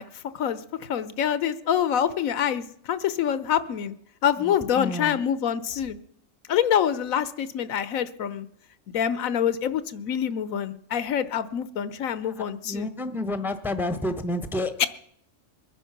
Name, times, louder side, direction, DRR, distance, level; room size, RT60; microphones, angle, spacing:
voice 1, 0.0-4.0 4.2-6.0 6.5-8.5 8.9-12.9 14.8-14.9, left 9 dB, 75° left, 15 dB, 1.2 m, -26 dB
voice 2, 4.4-5.2 12.2-14.9, left 2 dB, ahead, 10 dB, 0.8 m, -30 dB
22.5 x 10.0 x 5.9 m, 0.69 s
omnidirectional pair, 1.4 m